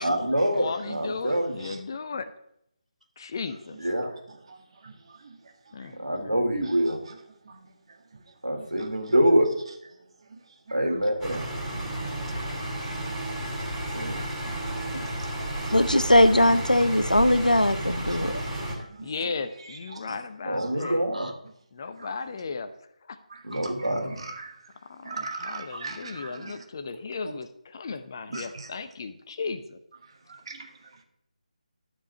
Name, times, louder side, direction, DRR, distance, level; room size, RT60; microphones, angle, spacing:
voice 1, 0.0-1.7 3.8-4.1 5.9-7.0 8.4-9.5 10.7-11.5 13.9-14.2 14.9-15.0 20.5-21.3 23.4-24.3 25.7-25.8 26.1-26.3 27.2-27.3, equal, 85° right, 3.0 m, -25 dB
voice 2, 0.6-2.3 3.2-3.8 5.7-6.0 6.2-6.4 19.0-21.0 21.7-22.7 23.1-23.2 24.9-29.8, left 4 dB, 30° left, 0.7 m, -35 dB
sound 1, 11.2-18.7, right 1 dB, 5° right, 2.3 m, -32 dB
voice 3, 14.1-15.1 15.6-16.0 17.9-18.5 18.8-19.1 19.9-20.0 20.6-20.7 22.0-22.1 23.3-23.6 24.2-24.5 25.0-26.6 28.3-28.7 30.3-30.7, right 4 dB, 40° right, 1.7 m, -41 dB
voice 4, 15.7-18.4, left 1 dB, 85° left, 0.8 m, -20 dB
12.5 x 4.8 x 7.0 m
figure-of-eight pair, 155°, 4 cm